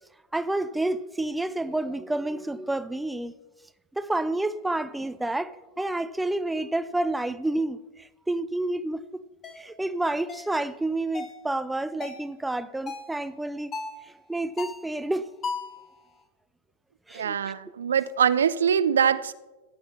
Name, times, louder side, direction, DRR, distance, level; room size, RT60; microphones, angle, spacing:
voice 1, 0.3-3.3 3.9-9.2 9.6-13.7 14.0-15.3 17.1-17.5, right 2 dB, 5° right, 0.5 m, -29 dB
sound 1, 9.4-9.6 10.3-10.5 11.1-11.4 12.0-12.3 12.9-13.2 13.7-14.0 14.6-14.9 15.4-15.8, left 4 dB, 25° left, 1.2 m, -35 dB
voice 2, 17.1-19.3, right 8 dB, 65° right, 0.4 m, -23 dB
15.0 x 8.7 x 4.2 m
figure-of-eight pair, 90°, 0 cm